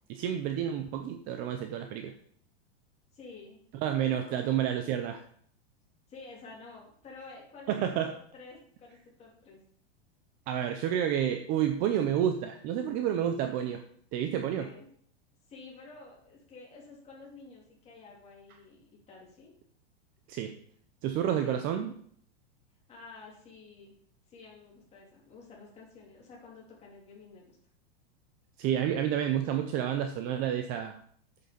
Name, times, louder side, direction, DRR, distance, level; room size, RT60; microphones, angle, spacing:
voice 1, 0.1-2.1 3.8-5.2 7.7-8.1 10.5-13.8 14.1-14.7 20.3-20.5 21.0-21.9 28.6-31.0, right 10 dB, 25° right, 7 dB, 0.5 m, -29 dB
voice 2, 3.1-3.6 3.9-5.0 6.1-9.6 14.6-14.9 15.5-19.5 21.4-21.7 22.9-23.9 24.3-27.6, left 4 dB, 20° left, -3 dB, 3.3 m, -50 dB
9.3 x 6.6 x 5.3 m, 0.62 s
supercardioid pair, 160°, 33 cm